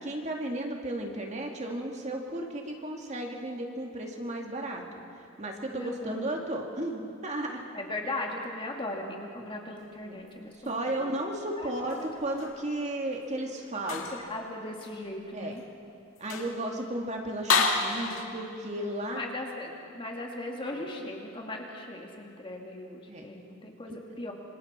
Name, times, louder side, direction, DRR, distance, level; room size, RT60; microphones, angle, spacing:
voice 1, 0.0-5.0 5.4-7.6 10.0-10.2 10.6-14.1 15.3-15.6 16.2-19.2 20.7-20.8 23.1-23.2 23.9-24.0, right 1 dB, 35° right, 1 dB, 2.1 m, -34 dB
voice 2, 5.7-6.3 7.7-11.2 11.6-12.1 13.8-15.6 19.1-24.3, left 2 dB, 25° left, 0 dB, 2.1 m, -38 dB
sound 1, 11.7-12.6 13.8-14.3 14.8-15.0 15.6-15.7 16.2-16.6 17.5-18.2, left 4 dB, 80° left, 2.1 m, -29 dB
26.5 x 26.0 x 4.4 m, 2.7 s
head